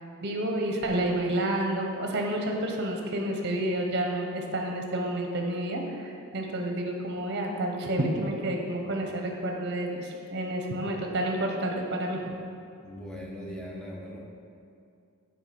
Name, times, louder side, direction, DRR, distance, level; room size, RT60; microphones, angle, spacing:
voice 1, 0.2-12.3, right 1 dB, 50° right, 1 dB, 0.7 m, -30 dB
voice 2, 12.8-14.2, equal, 5° left, -3 dB, 0.6 m, -39 dB
5.3 x 3.7 x 5.1 m, 2.5 s
head